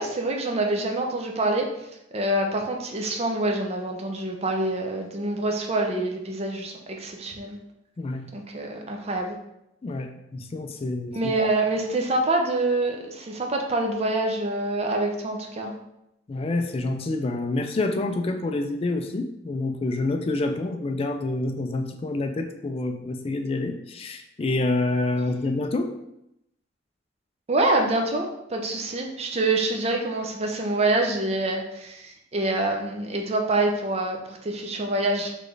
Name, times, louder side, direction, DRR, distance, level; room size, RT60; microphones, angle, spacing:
voice 1, 0.0-1.7 2.1-7.6 8.3-9.4 11.1-15.7 27.5-35.3, right 2 dB, 30° right, 2 dB, 0.5 m, -26 dB
voice 2, 8.0-8.3 9.8-11.3 16.3-25.9, left 2 dB, 30° left, 6 dB, 0.3 m, -27 dB
4.2 x 3.2 x 3.3 m, 0.83 s
head